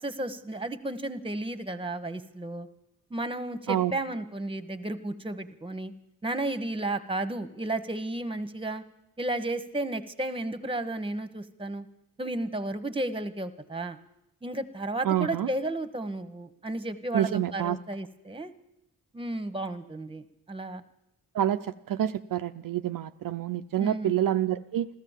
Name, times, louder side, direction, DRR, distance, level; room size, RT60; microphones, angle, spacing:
voice 1, 0.0-2.7 3.1-5.9 6.2-8.8 9.2-11.9 12.2-14.0 14.4-18.5 19.1-20.8 23.8-24.1, right 2 dB, 15° right, 12 dB, 1.2 m, -33 dB
voice 2, 15.0-15.5 17.1-17.8 21.3-21.6 21.9-24.9, right 11 dB, 70° right, 8 dB, 0.6 m, -27 dB
14.0 x 13.5 x 7.3 m, 0.84 s
cardioid pair, 55°, 35 cm